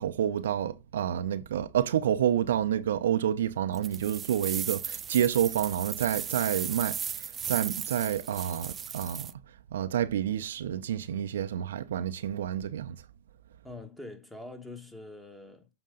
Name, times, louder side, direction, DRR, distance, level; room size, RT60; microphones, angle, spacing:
voice 1, 0.0-9.3 9.7-13.0, right 10 dB, 70° right, 0.6 m, -29 dB
sound 1, 3.7-9.3, right 8 dB, 25° right, 0.4 m, -36 dB
voice 2, 13.6-15.7, left 2 dB, 5° left, 1.4 m, -44 dB
7.7 x 4.3 x 3.8 m
hypercardioid pair, 110°, 0 cm